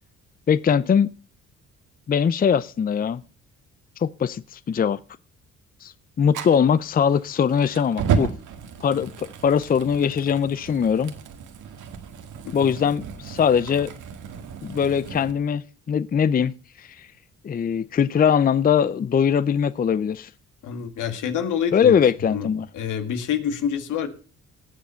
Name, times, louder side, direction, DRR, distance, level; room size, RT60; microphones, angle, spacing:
voice 1, 0.5-1.1 2.1-3.2 4.0-5.0 5.8-8.3 8.8-11.1 12.5-13.9 14.6-17.1 17.4-20.3 21.7-22.7, left 7 dB, 30° left, 0.5 m, -21 dB
Fire, 6.3-15.3, right 7 dB, 80° right, 1.9 m, -32 dB
voice 2, 20.6-21.9 22.3-22.5 22.7-24.1, left 8 dB, 80° left, 2.1 m, -27 dB
18.0 x 7.1 x 5.7 m
cardioid pair, 90°, 30 cm